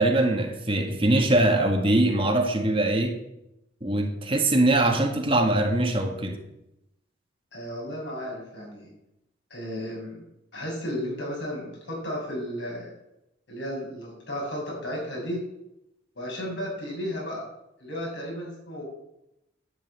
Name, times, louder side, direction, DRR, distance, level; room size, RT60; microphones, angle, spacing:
voice 1, 0.0-3.2 3.8-6.4, right 1 dB, 30° right, 3 dB, 1.8 m, -22 dB
voice 2, 7.5-8.9 9.5-10.2 10.5-12.9 13.5-15.4 16.2-17.5 17.8-18.8, equal, 70° left, -2 dB, 7.0 m, -33 dB
11.5 x 8.4 x 8.8 m, 0.86 s
head